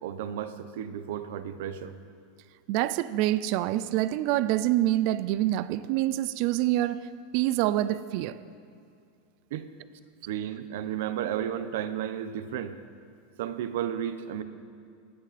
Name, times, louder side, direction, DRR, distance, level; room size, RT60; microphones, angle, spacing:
voice 1, 0.0-1.9 9.5-9.7 10.3-12.7 13.4-14.4, right 10 dB, 65° right, 0.9 m, -33 dB
voice 2, 2.7-7.0 7.3-8.4, right 14 dB, 45° right, 0.4 m, -26 dB
25.5 x 10.5 x 4.3 m
supercardioid pair, 175°, 0 cm